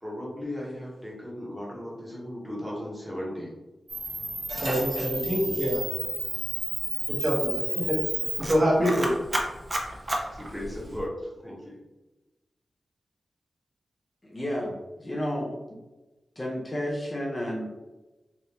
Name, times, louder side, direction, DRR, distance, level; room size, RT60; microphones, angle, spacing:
voice 1, 0.0-3.5 9.8-10.0 10.3-11.7, left 1 dB, ahead, -5 dB, 1.0 m, -36 dB
Camera, 3.9-11.0, right 2 dB, 30° right, 0.5 m, -31 dB
voice 2, 4.5-5.9 7.1-8.0 8.4-9.2, equal, 55° right, -4 dB, 1.2 m, -25 dB
voice 3, 14.3-15.6 16.4-17.7, equal, 25° left, -2 dB, 0.6 m, -31 dB
3.4 x 2.6 x 2.8 m, 1.1 s
wide cardioid pair, 115°, 0 cm